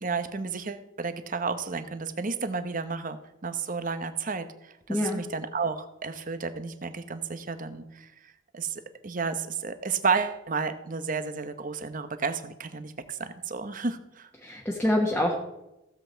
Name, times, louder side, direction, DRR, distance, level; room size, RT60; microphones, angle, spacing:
voice 1, 0.0-14.3, right 5 dB, 45° right, 10 dB, 1.0 m, -32 dB
voice 2, 4.9-5.2 14.4-15.4, left 1 dB, 10° left, -2 dB, 1.4 m, -26 dB
15.5 x 7.9 x 4.5 m, 0.93 s
head